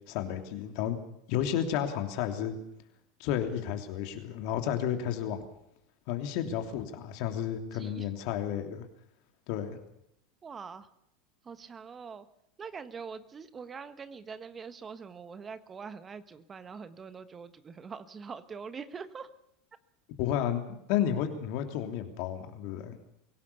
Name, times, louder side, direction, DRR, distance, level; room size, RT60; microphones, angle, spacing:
voice 1, 0.1-1.0 1.3-2.6 3.2-5.4 6.1-8.9 9.5-9.8 20.2-20.6 20.9-22.9, left 10 dB, 60° left, 5 dB, 3.1 m, -32 dB
voice 2, 7.7-8.2 10.4-10.9 11.4-12.3 12.6-19.3, right 5 dB, 25° right, 12 dB, 1.3 m, -44 dB
23.0 x 17.5 x 7.0 m, 0.78 s
hypercardioid pair, 90°, 0 cm